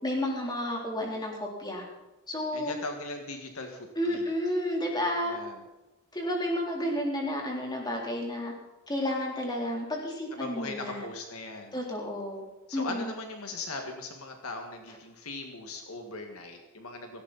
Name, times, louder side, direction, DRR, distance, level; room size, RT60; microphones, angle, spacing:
voice 1, 0.0-1.8 2.3-2.7 4.0-5.4 6.1-8.5 8.9-11.0 11.7-12.4 12.7-13.1, left 1 dB, 20° left, -1 dB, 3.7 m, -31 dB
voice 2, 2.5-4.3 5.3-5.6 10.4-11.8 12.7-17.2, left 3 dB, 70° left, 4 dB, 1.9 m, -39 dB
18.0 x 16.0 x 4.2 m, 1.0 s
head